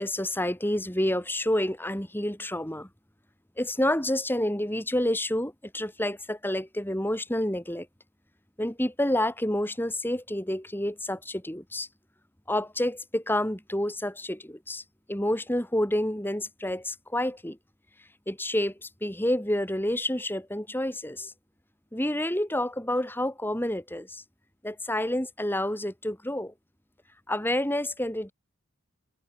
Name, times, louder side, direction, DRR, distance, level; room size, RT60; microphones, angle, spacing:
voice 1, 0.0-2.9 3.6-7.9 8.6-11.9 12.5-14.8 15.1-17.6 18.3-21.3 21.9-24.2 24.6-26.5 27.3-28.3, left 1 dB, 10° left, 3.3 m, -29 dB
head